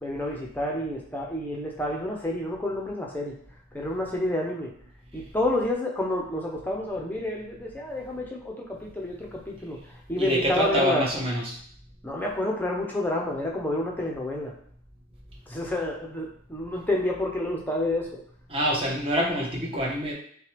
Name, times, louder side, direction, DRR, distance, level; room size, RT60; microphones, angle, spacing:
voice 1, 0.0-3.3 3.7-4.7 5.1-11.1 12.0-14.5 15.5-18.2, left 1 dB, 10° left, -1 dB, 0.7 m, -29 dB
voice 2, 10.2-11.6 18.5-20.1, equal, 25° right, -3 dB, 1.0 m, -26 dB
6.1 x 2.3 x 3.3 m, 0.63 s
head